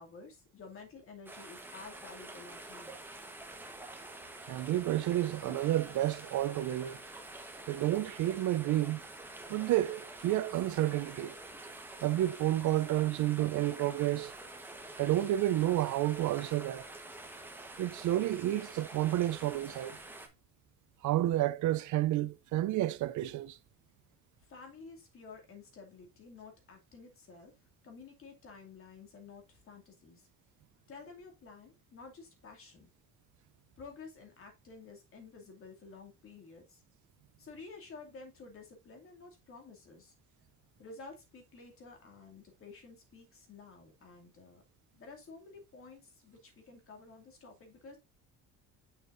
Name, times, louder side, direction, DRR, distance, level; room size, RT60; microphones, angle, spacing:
voice 1, 0.0-3.0 24.5-27.5 27.8-30.3 30.9-32.9 33.8-36.8 37.4-40.1 40.8-44.6 45.0-48.0, left 4 dB, 40° left, 2.5 m, -51 dB
sound 1, 1.3-20.3, right 2 dB, 5° right, 1.1 m, -48 dB
voice 2, 4.5-7.0 7.7-9.0 9.5-11.3 12.0-14.3 15.0-16.9 17.8-20.0 21.0-23.6, right 14 dB, 60° right, 0.5 m, -30 dB
6.6 x 6.5 x 2.5 m
cardioid pair, 160°, 33 cm